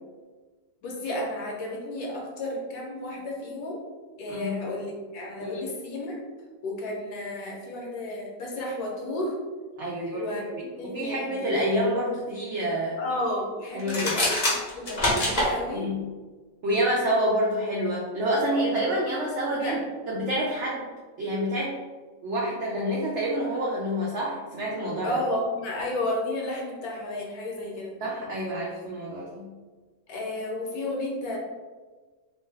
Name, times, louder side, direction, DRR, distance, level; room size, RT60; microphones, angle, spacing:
voice 1, 0.8-3.8 4.2-6.2 6.6-9.4 10.1-11.5 13.0-14.4 14.7-15.9 18.4-18.8 19.6-19.8 25.0-27.9 30.1-31.4, left 1 dB, 70° left, -2 dB, 1.1 m, -32 dB
voice 2, 4.3-4.6 5.4-5.7 9.8-10.2 10.5-13.0 13.7-14.2 15.7-16.0 16.6-19.8 20.1-20.9 21.2-21.8 22.2-25.1 28.0-29.5, equal, 85° right, -4 dB, 0.6 m, -28 dB
sound 1, 13.8-15.5, left 1 dB, 40° left, 0.6 m, -24 dB
2.8 x 2.2 x 3.2 m, 1.4 s
omnidirectional pair, 1.8 m